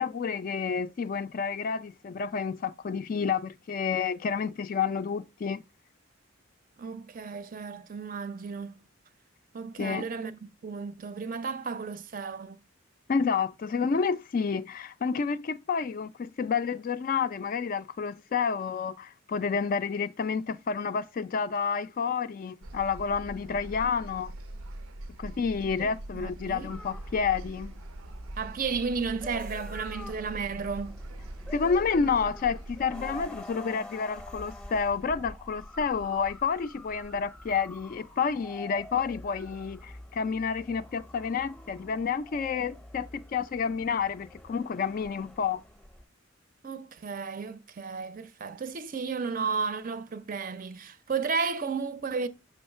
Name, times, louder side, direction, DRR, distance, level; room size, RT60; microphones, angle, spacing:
voice 1, 0.0-5.6 9.8-10.1 13.1-24.3 25.2-27.7 31.5-45.6, left 6 dB, 40° left, 0.3 m, -29 dB
voice 2, 6.8-8.8 9.5-12.6 25.8-25.9 26.1-26.7 28.4-31.0 46.6-52.3, right 5 dB, 40° right, 0.5 m, -33 dB
sound 1, 22.6-33.3, right 1 dB, 90° right, 0.6 m, -42 dB
sound 2, 26.7-46.0, left 1 dB, 5° left, 0.7 m, -47 dB
6.4 x 3.1 x 5.4 m
head